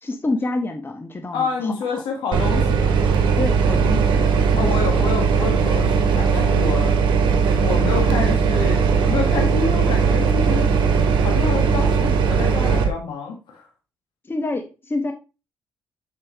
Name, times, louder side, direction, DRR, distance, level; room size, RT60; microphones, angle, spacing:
voice 1, 0.0-2.0 3.4-5.1 14.2-15.1, left 2 dB, 30° left, 5 dB, 1.3 m, -28 dB
voice 2, 1.3-3.0 4.6-6.9 7.4-10.7 11.2-13.7, left 5 dB, 80° left, 3 dB, 1.6 m, -27 dB
sound 1, 2.3-12.9, right 6 dB, 75° right, 1.1 m, -18 dB
6.8 x 5.5 x 3.1 m, 0.29 s
supercardioid pair, 50°, 8 cm